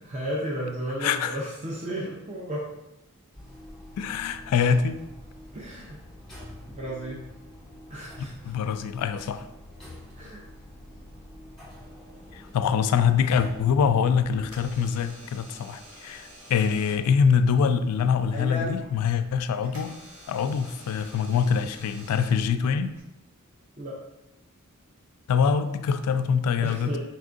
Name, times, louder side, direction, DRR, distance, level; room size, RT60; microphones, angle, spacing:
voice 1, 0.0-2.7 5.5-6.0 6.7-7.2 7.9-8.3 10.2-10.4 23.8-24.0 26.6-27.0, right 1 dB, 30° right, -4 dB, 0.6 m, -33 dB
voice 2, 1.0-1.4 4.0-5.0 8.4-9.5 12.3-20.0 20.3-22.9 25.3-27.0, left 6 dB, 85° left, 13 dB, 0.3 m, -24 dB
sound 1, 3.3-14.9, left 1 dB, ahead, 1.5 m, -46 dB
Door / Alarm, 13.8-23.0, left 1 dB, 80° right, 1.3 m, -43 dB
4.4 x 3.6 x 2.5 m, 0.92 s
head